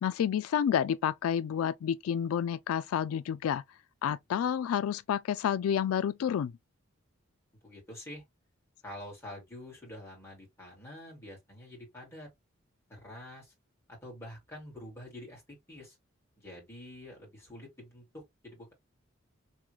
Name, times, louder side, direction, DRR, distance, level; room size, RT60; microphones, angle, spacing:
voice 1, 0.0-3.6 4.0-6.5, left 8 dB, 90° left, 0.3 m, -29 dB
voice 2, 7.6-8.2 8.8-12.3 12.9-13.5 13.9-16.0 16.4-18.7, left 1 dB, 15° left, 2.5 m, -47 dB
3.7 x 3.1 x 3.1 m
head